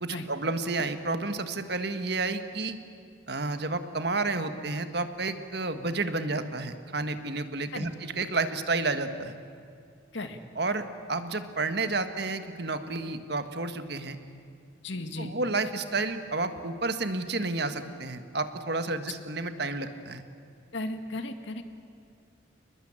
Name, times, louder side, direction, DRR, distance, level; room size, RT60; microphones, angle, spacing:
voice 1, 0.0-2.8 3.3-9.4 10.6-14.2 15.2-20.2, right 3 dB, 55° right, 9 dB, 1.7 m, -31 dB
voice 2, 14.8-15.3 20.7-21.6, left 2 dB, 70° left, 7 dB, 2.1 m, -35 dB
30.0 x 21.0 x 9.0 m, 2.4 s
head